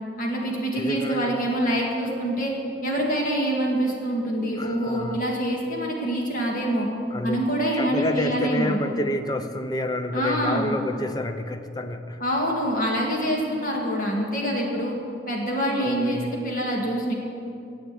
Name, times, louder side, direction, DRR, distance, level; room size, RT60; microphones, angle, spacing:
voice 1, 0.2-2.5 2.8-6.9 7.2-8.8 10.1-10.8 12.2-15.0 15.3-17.1, right 1 dB, 45° left, -1 dB, 1.9 m, -25 dB
voice 2, 0.7-1.4 4.6-5.2 7.1-12.2 15.8-16.3, left 1 dB, 20° left, 8 dB, 0.5 m, -29 dB
10.0 x 7.8 x 9.3 m, 2.5 s
head